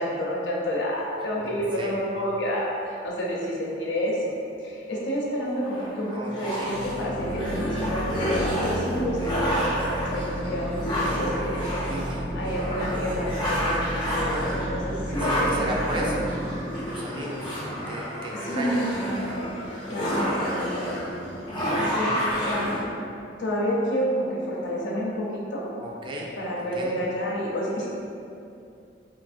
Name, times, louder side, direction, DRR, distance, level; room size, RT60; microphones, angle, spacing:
voice 1, 0.0-8.3 8.6-11.8 12.3-13.9 14.1-16.1 18.3-19.5 19.9-21.0 21.5-22.7 23.4-25.6 26.4-27.9, equal, 80° left, -4 dB, 0.6 m, -29 dB
voice 2, 1.4-2.0 6.1-6.8 9.2-9.4 11.9-12.2 15.2-16.3 16.8-17.6 17.9-18.8 21.6-22.3 25.8-26.3 26.6-27.0, right 1 dB, 25° right, -2 dB, 0.3 m, -35 dB
sound 1, 5.6-22.8, equal, 25° left, 0.5 m, -30 dB
sound 2, 6.6-18.1, equal, 85° right, 0.5 m, -33 dB
3.4 x 2.0 x 2.4 m, 2.6 s
head